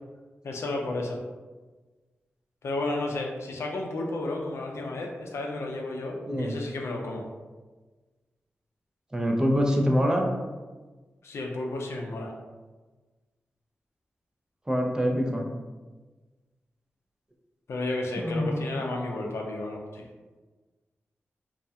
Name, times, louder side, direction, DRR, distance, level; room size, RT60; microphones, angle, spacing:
voice 1, 0.4-1.2 2.6-7.2 11.2-12.3 17.7-20.1, left 2 dB, 75° left, 1 dB, 0.4 m, -32 dB
voice 2, 9.1-10.3 14.7-15.5 18.2-18.6, equal, 15° right, 0 dB, 0.4 m, -25 dB
2.3 x 2.1 x 2.7 m, 1.3 s
cardioid pair, 70°, 5 cm